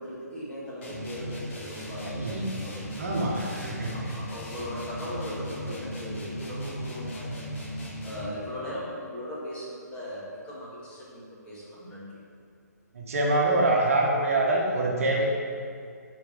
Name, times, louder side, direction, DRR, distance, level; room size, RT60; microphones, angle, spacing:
voice 1, 0.0-3.3 3.9-7.6 8.0-12.2, left 1 dB, 10° left, -8 dB, 2.1 m, -39 dB
sound 1, 0.8-8.5, equal, 45° left, 1.9 m, -37 dB
voice 2, 2.2-2.5 3.0-3.9 12.9-15.3, right 2 dB, 50° right, -2 dB, 1.4 m, -25 dB
8.2 x 4.6 x 6.3 m, 2.2 s
figure-of-eight pair, 135°, 9 cm